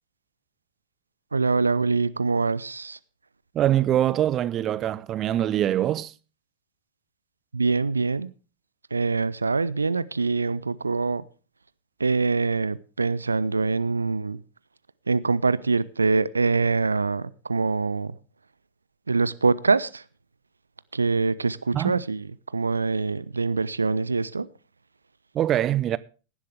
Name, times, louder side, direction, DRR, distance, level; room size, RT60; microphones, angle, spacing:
voice 1, 1.3-3.0 7.5-8.3 8.9-11.2 12.0-14.4 15.1-18.2 19.1-20.0 20.9-22.3 22.5-24.5, right 4 dB, 80° right, 0.5 m, -24 dB
voice 2, 3.5-6.1 21.7-22.0 25.3-26.0, right 12 dB, 30° right, 0.6 m, -23 dB
17.0 x 11.5 x 3.4 m
figure-of-eight pair, 90°, 0 cm